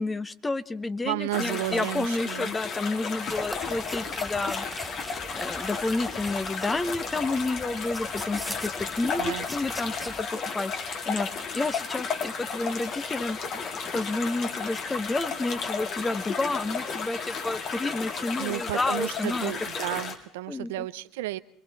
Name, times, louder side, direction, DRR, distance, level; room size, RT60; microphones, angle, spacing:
voice 1, 0.0-10.3 10.5-19.5 20.5-20.8, left 2 dB, 20° left, 12 dB, 1.3 m, -30 dB
voice 2, 1.0-2.5 9.2-9.5 18.4-21.4, right 17 dB, 80° right, 14 dB, 0.7 m, -32 dB
sound 1, 1.3-20.2, left 5 dB, 55° left, 3.3 m, -33 dB
sound 2, 3.3-10.2, equal, 5° left, 1.1 m, -41 dB
27.0 x 22.5 x 4.3 m, 0.65 s
hypercardioid pair, 75°, 0 cm